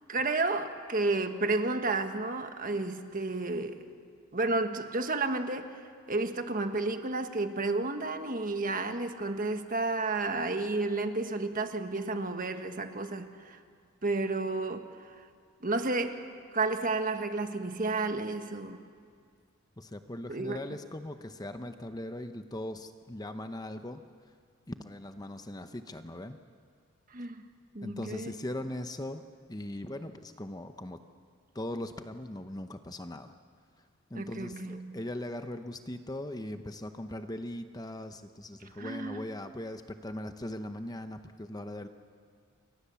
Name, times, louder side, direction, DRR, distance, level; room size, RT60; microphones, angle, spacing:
voice 1, 0.1-3.8 4.3-5.8 6.1-13.6 14.0-15.2 15.6-16.2 16.5-18.8 20.3-20.8 27.1-27.4 27.7-28.3 34.1-35.0 38.6-39.3, right 3 dB, 40° right, 7 dB, 1.4 m, -31 dB
voice 2, 19.8-24.0 24.7-26.4 27.8-29.2 29.5-31.0 31.5-33.3 34.1-41.9, left 1 dB, 20° left, 8 dB, 0.8 m, -39 dB
29.0 x 23.5 x 7.0 m, 2.1 s
head